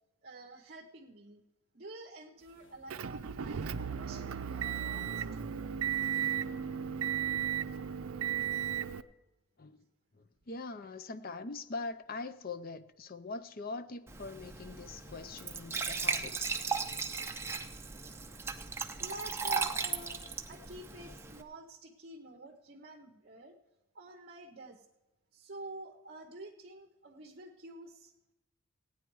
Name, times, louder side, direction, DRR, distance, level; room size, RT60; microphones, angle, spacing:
voice 1, 0.2-1.4 1.7-5.6 19.0-23.6 23.9-24.9 25.3-28.1, right 2 dB, 45° right, 0.8 m, -48 dB
sound 1, 2.4-7.9, right 2 dB, 70° left, 2.9 m, -59 dB
Motor vehicle (road) / Engine, 2.9-9.0, right 8 dB, 80° right, 0.5 m, -35 dB
voice 2, 10.1-16.5, left 3 dB, 45° left, 0.5 m, -42 dB
Glass / Trickle dribble / Fill (with liquid), 14.1-21.4, right 5 dB, 10° right, 0.6 m, -37 dB
16.0 x 9.5 x 4.7 m
head